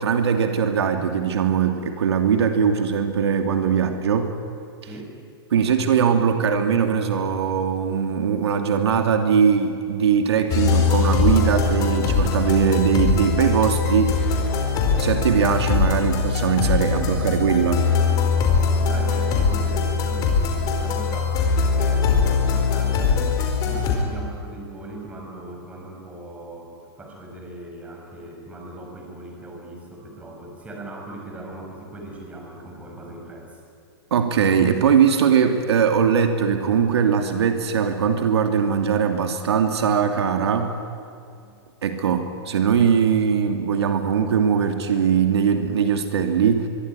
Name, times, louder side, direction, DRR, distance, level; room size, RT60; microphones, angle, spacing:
voice 1, 0.0-4.3 5.5-14.2 15.0-17.9 34.1-40.8 41.8-46.7, right 7 dB, 80° right, 6 dB, 2.9 m, -20 dB
sound 1, 10.5-24.0, left 5 dB, 25° left, 4.7 m, -21 dB
voice 2, 18.8-21.4 21.7-23.3 23.6-33.6 41.3-41.5, right 2 dB, 10° right, 0 dB, 5.5 m, -39 dB
24.0 x 23.5 x 10.0 m, 2.4 s
hypercardioid pair, 160°, 14 cm